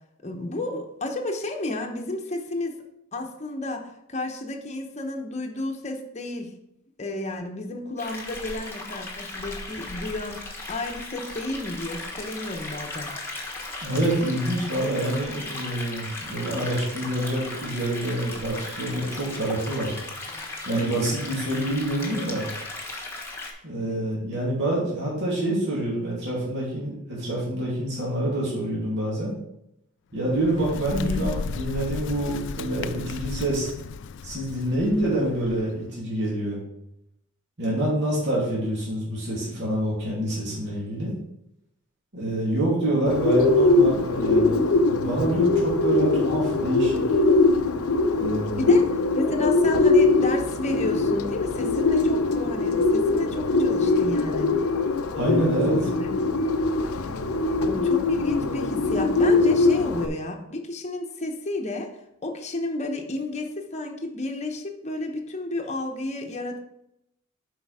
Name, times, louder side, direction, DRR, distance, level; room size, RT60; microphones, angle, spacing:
voice 1, 0.2-2.8 3.1-6.5 7.0-13.2 23.8-24.0 30.9-31.3 42.3-42.5 46.0-46.1 48.6-48.9 49.1-54.5 55.5-56.1 57.6-61.9 62.2-66.6, left 2 dB, 30° left, 3 dB, 1.0 m, -31 dB
sound 1, 8.0-23.5, left 2 dB, 10° left, 1.3 m, -37 dB
voice 2, 13.8-20.0 20.6-22.5 23.6-29.3 30.1-33.7 34.2-36.6 37.6-41.1 42.1-47.2 48.1-48.7 55.1-55.8, right 1 dB, 55° right, -6 dB, 2.7 m, -27 dB
Bird, 30.1-35.9, left 5 dB, 55° left, 0.3 m, -35 dB
Bird 2, 43.1-60.1, left 3 dB, 85° left, 0.7 m, -22 dB
7.8 x 5.1 x 4.9 m, 0.81 s
head